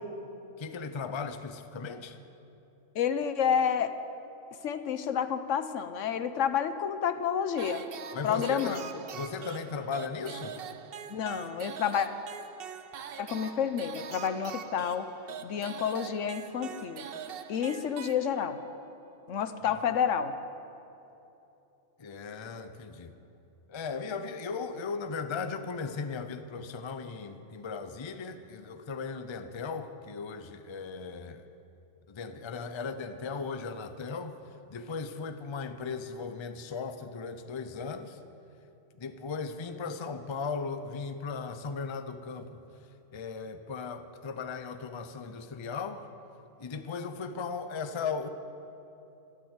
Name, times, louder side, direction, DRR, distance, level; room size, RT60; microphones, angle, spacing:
voice 1, 0.6-2.2 8.1-8.8 9.1-10.6 19.6-19.7 22.0-23.1 23.7-31.4 32.1-34.3 34.7-38.2 39.0-42.6 43.1-46.0 46.6-48.3, left 5 dB, 30° left, 9 dB, 0.5 m, -37 dB
voice 2, 2.9-3.9 4.6-7.8 8.2-8.8 11.1-12.1 13.2-15.1 15.4-17.0 17.5-18.6 19.3-20.3, left 8 dB, 75° left, 10 dB, 1.1 m, -29 dB
sound 1, 7.6-18.7, right 7 dB, 55° right, 0.8 m, -43 dB
12.5 x 12.5 x 8.1 m, 3.0 s
omnidirectional pair, 1.3 m